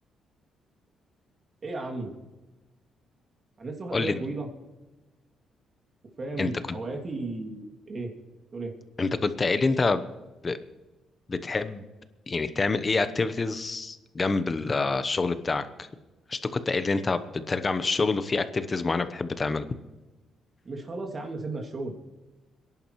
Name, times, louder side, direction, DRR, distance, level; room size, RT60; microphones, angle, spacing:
voice 1, 1.6-2.1 3.6-4.5 6.2-8.1 8.5-8.7 20.6-22.0, right 2 dB, 40° right, 3 dB, 2.6 m, -34 dB
voice 2, 9.0-10.0 10.4-10.6 11.3-11.8 12.3-15.9 16.3-16.4 16.7-19.6, left 3 dB, 30° left, 12 dB, 1.0 m, -27 dB
26.0 x 11.0 x 3.2 m, 1.1 s
cardioid pair, 90°, 0 cm